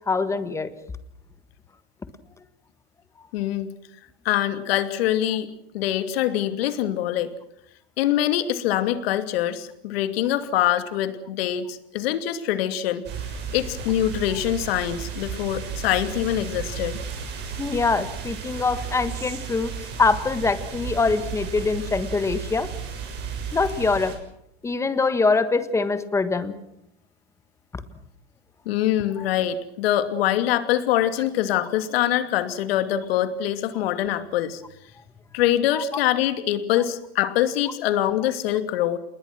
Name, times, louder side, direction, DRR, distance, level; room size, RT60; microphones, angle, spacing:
voice 1, 0.1-0.7 17.6-19.7 20.0-22.7 23.5-24.1 24.6-26.6 29.2-29.3 35.7-36.0, left 4 dB, 10° left, 11 dB, 1.5 m, -23 dB
voice 2, 3.3-3.7 4.2-7.3 8.0-13.0 13.5-17.0 28.7-34.6 35.3-39.0, left 12 dB, 65° left, 9 dB, 2.7 m, -24 dB
sound 1, 13.0-24.2, right 6 dB, 30° right, 6.6 m, -34 dB
28.5 x 21.0 x 6.2 m, 0.76 s
supercardioid pair, 150°, 33 cm